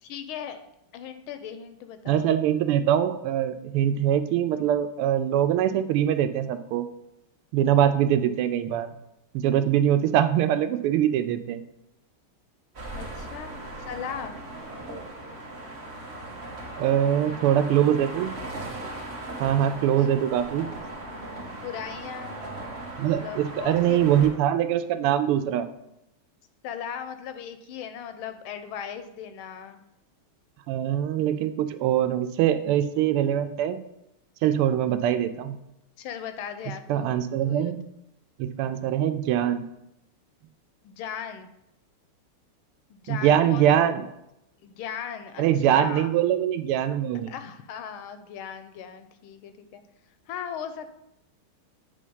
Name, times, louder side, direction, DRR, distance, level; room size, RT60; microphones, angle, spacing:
voice 1, 0.0-0.7 0.9-2.2 13.0-14.3 16.8-17.4 19.4-19.9 20.4-20.5 21.5-22.4 23.1-24.0 26.6-29.8 36.0-37.1 37.4-37.7 40.8-41.5 42.9-43.8 44.6-46.1 47.3-49.8 50.3-50.9, left 8 dB, 80° left, 9 dB, 1.4 m, -38 dB
voice 2, 2.1-6.9 7.5-8.9 9.3-11.6 16.8-18.3 19.4-20.7 23.0-25.7 30.7-33.8 34.4-35.6 36.9-37.9 38.4-39.6 43.1-44.0 45.4-47.3, right 10 dB, 85° right, 11 dB, 1.5 m, -23 dB
sound 1, 12.7-24.3, right 2 dB, 35° right, 1.2 m, -38 dB
8.6 x 3.3 x 5.4 m, 0.84 s
omnidirectional pair, 2.4 m